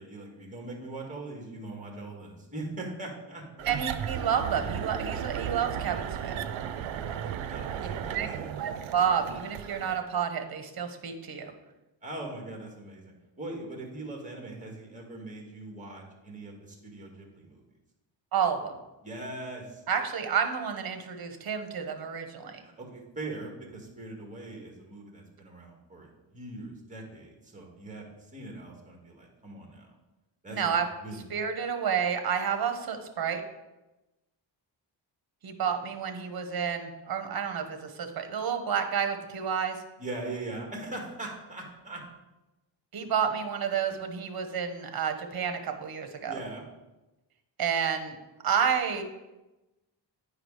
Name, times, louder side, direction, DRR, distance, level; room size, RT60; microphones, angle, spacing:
voice 1, 0.0-3.7 7.5-8.5 12.0-17.6 19.0-19.8 22.6-29.9 30.4-30.7 31.0-31.2 40.0-42.0 46.3-46.6, right 2 dB, 15° right, 0 dB, 2.0 m, -41 dB
voice 2, 3.6-6.4 8.1-8.3 8.6-11.5 18.3-18.8 19.9-22.6 30.5-30.9 31.3-33.4 35.4-39.8 42.9-46.4 47.6-48.2 48.4-49.0, right 7 dB, 50° right, 6 dB, 1.1 m, -30 dB
sound 1, 3.6-10.0, right 9 dB, 85° right, 0.7 m, -35 dB
9.7 x 4.9 x 4.8 m, 1.0 s
wide cardioid pair, 135°, 46 cm